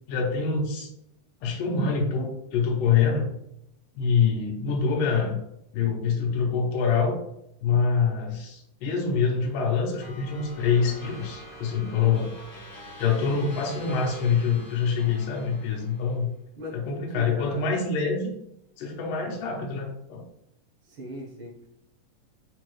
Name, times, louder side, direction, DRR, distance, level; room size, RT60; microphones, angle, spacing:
voice 1, 0.1-0.9 1.4-3.3 4.0-5.4 5.7-7.2 7.6-12.3 13.0-16.3 16.7-18.3 18.8-20.2, left 5 dB, 85° left, -1 dB, 2.3 m, -25 dB
sound 1, 10.0-16.2, equal, 45° left, 1.6 m, -45 dB
voice 2, 17.1-17.6 20.8-21.7, equal, 70° right, -5 dB, 1.2 m, -38 dB
5.2 x 3.0 x 2.3 m, 0.78 s
omnidirectional pair, 3.7 m